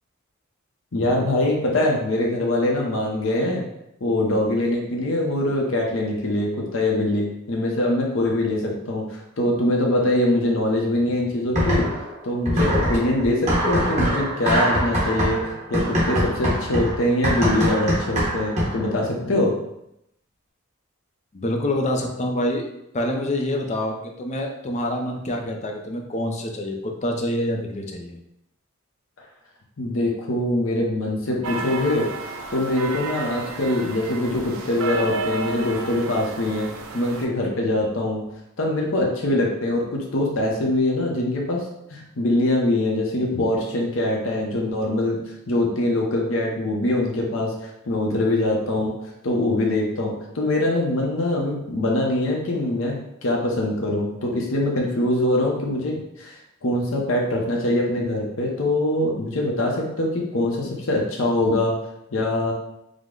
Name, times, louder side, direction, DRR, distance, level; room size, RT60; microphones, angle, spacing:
voice 1, 0.9-3.6 4.0-11.9 12.2-19.5 29.8-32.1 32.5-36.7 36.9-38.2 38.6-45.2 45.5-48.9 49.2-53.0 53.2-61.7 62.1-62.5, left 1 dB, 65° left, -1 dB, 0.8 m, -23 dB
sound 1, 11.5-12.1 12.5-18.9, equal, 35° right, 1.2 m, -23 dB
voice 2, 21.3-22.7 22.9-28.2, left 1 dB, 35° left, 2 dB, 0.6 m, -26 dB
sound 2, 31.4-37.3, right 3 dB, 75° right, 0.5 m, -32 dB
5.0 x 2.1 x 3.7 m, 0.82 s
head